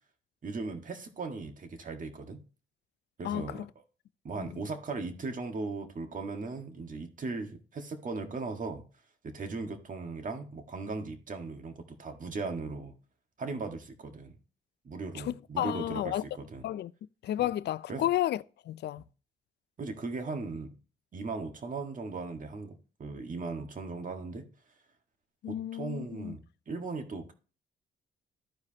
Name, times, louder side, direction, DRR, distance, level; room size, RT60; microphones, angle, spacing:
voice 1, 0.4-2.4 3.2-3.7 4.2-8.8 9.2-13.0 13.4-14.4 14.8-16.7 17.4-17.5 17.9-18.1 19.0-19.1 19.8-20.7 21.1-24.5 25.5-27.3, right 3 dB, 40° right, 1.7 m, -38 dB
voice 2, 3.2-3.7 4.4-4.5 15.1-16.2 16.6-16.9 17.2-19.0 25.4-26.4, left 12 dB, 60° left, 0.4 m, -32 dB
14.5 x 4.8 x 2.9 m
cardioid pair, 90°, 20 cm